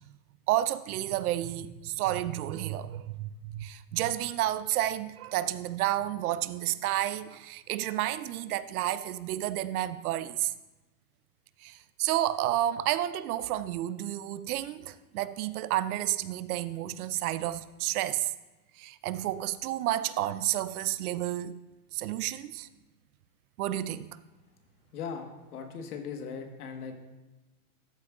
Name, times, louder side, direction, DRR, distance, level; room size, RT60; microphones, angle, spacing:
voice 1, 0.5-10.5 11.6-18.3 18.8-21.6 21.9-22.7 23.6-24.2, right 13 dB, 75° right, 0.6 m, -31 dB
voice 2, 24.9-25.3 25.5-26.9, left 6 dB, 85° left, 1.5 m, -38 dB
13.0 x 8.3 x 2.4 m
supercardioid pair, 145°, 44 cm